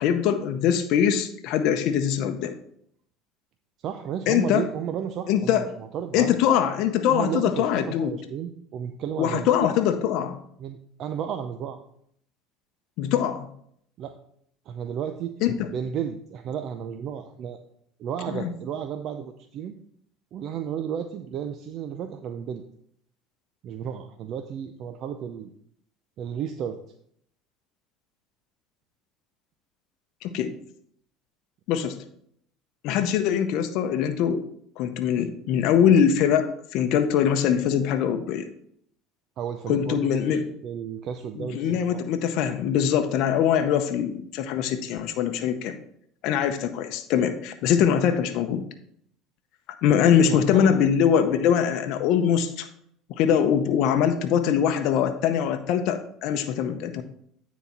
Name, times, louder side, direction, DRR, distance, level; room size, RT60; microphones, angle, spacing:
voice 1, 0.0-2.5 4.3-4.7 5.3-5.7 6.1-8.2 9.2-10.4 13.0-13.5 15.4-15.5 18.3-18.5 30.2-30.5 31.7-32.0 32.8-34.4 34.8-38.5 39.7-40.5 41.4-45.8 46.2-48.6 49.8-52.7 53.2-57.0, left 8 dB, 65° left, 7 dB, 0.7 m, -22 dB
voice 2, 3.8-6.3 7.1-9.5 10.6-11.8 14.0-14.1 14.7-15.3 15.7-17.6 18.0-19.7 20.3-22.6 23.6-25.5 26.2-26.8 39.4-42.0 50.2-50.7, right 8 dB, 55° right, 7 dB, 0.5 m, -33 dB
9.3 x 4.1 x 4.3 m, 0.67 s
supercardioid pair, 95°, 0 cm